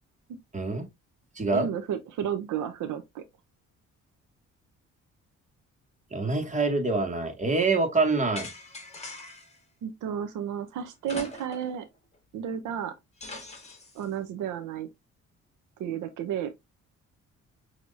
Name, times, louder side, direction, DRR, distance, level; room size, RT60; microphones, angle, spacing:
voice 1, 0.5-0.9 1.4-1.7 6.1-8.5, right 3 dB, 25° right, 1.8 m, -25 dB
voice 2, 1.5-3.2 9.8-11.9 12.3-12.9 13.9-14.9 15.8-16.5, right 9 dB, 85° right, 0.7 m, -32 dB
sound 1, 8.4-9.6 11.0-11.8 12.1-12.2 13.2-14.1, left 2 dB, 20° left, 1.9 m, -41 dB
6.2 x 2.9 x 2.5 m
cardioid pair, 90°, 30 cm